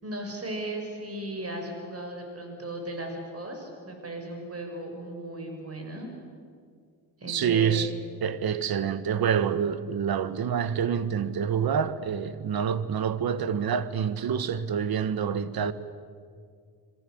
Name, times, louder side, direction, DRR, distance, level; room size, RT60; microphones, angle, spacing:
voice 1, 0.0-6.1 7.2-7.8, right 1 dB, 35° right, 6.6 m, -36 dB
voice 2, 7.3-7.9 8.2-15.7, right 7 dB, 55° right, 1.5 m, -27 dB
26.0 x 23.0 x 7.9 m
supercardioid pair, 75°, 43 cm